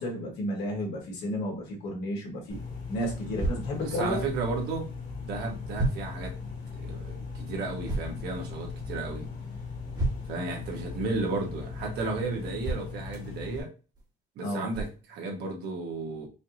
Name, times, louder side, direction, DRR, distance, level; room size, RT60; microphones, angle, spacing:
voice 1, 0.0-2.6 2.9-4.2 14.4-14.7, equal, 85° left, -1 dB, 1.9 m, -32 dB
sound 1, 2.5-13.6, left 4 dB, 45° left, 2.1 m, -38 dB
voice 2, 3.2-4.9 5.2-6.3 6.7-9.3 10.3-13.7 14.3-16.3, right 3 dB, 80° right, 0 dB, 1.5 m, -34 dB
sound 2, 3.4-3.6 5.0-5.1 5.7-6.0 7.8-8.1 9.9-10.4 12.6-12.9 14.0-14.1 14.7-14.9, right 2 dB, 25° right, 1.5 m, -30 dB
5.1 x 2.9 x 2.7 m, 0.33 s
cardioid pair, 110°, 17 cm